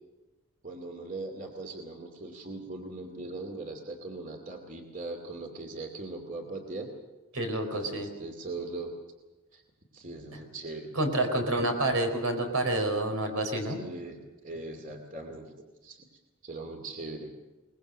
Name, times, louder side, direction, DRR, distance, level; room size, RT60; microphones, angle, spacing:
voice 1, 0.6-6.9 7.7-8.9 9.5-9.6 9.9-10.9 13.6-15.5 15.8-16.0 16.4-17.3, right 2 dB, 35° right, 4 dB, 2.5 m, -40 dB
voice 2, 7.3-8.1 10.9-13.8, right 1 dB, 85° right, 5 dB, 4.4 m, -28 dB
23.0 x 20.5 x 6.5 m, 1.1 s
head